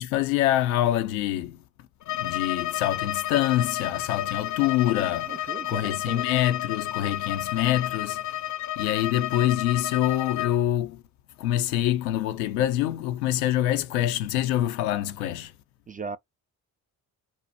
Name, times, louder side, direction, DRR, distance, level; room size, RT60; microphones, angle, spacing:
voice 1, 0.0-1.6 2.1-8.4 8.8-11.0 11.4-15.5, left 13 dB, 90° left, 0.5 m, -25 dB
Bowed string instrument, 2.0-10.6, left 14 dB, 45° left, 0.5 m, -31 dB
voice 2, 5.3-6.3 15.9-16.2, right 4 dB, 20° right, 0.3 m, -37 dB
2.8 x 2.1 x 4.0 m
hypercardioid pair, 50°, 41 cm